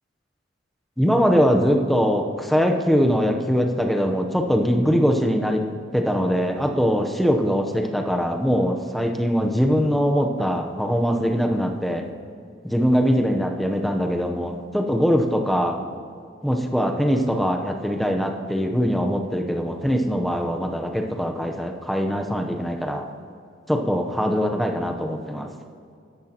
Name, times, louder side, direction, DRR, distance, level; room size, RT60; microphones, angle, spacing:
voice 1, 1.0-5.7 5.9-12.1 12.6-15.8 16.4-23.0 23.7-25.5, equal, ahead, 3 dB, 0.8 m, -22 dB
14.0 x 10.5 x 2.9 m, 2.3 s
head